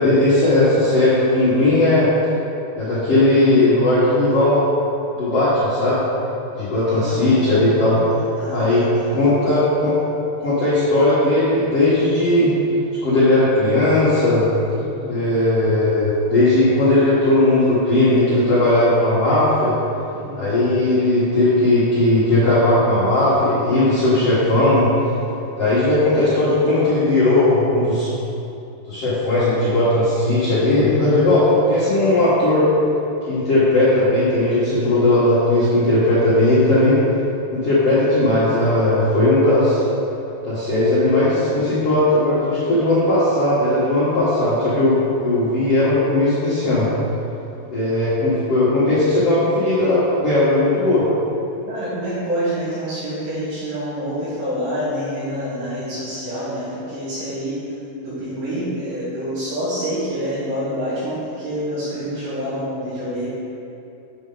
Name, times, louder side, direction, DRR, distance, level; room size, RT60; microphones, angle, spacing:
voice 1, 0.0-2.1 2.8-4.6 5.1-6.0 6.5-8.0 8.5-8.8 9.1-10.0 10.4-12.5 13.0-14.5 15.1-19.7 20.4-24.9 25.5-28.1 28.9-32.7 33.3-37.0 37.5-39.8 40.4-46.9 47.7-51.0, left 2 dB, 60° left, -11 dB, 1.6 m, -17 dB
voice 2, 6.9-9.3 14.7-15.2 20.1-20.4 51.7-57.6 58.0-63.3, equal, 75° right, -12 dB, 4.0 m, -27 dB
8.1 x 6.6 x 3.9 m, 2.8 s
omnidirectional pair, 5.0 m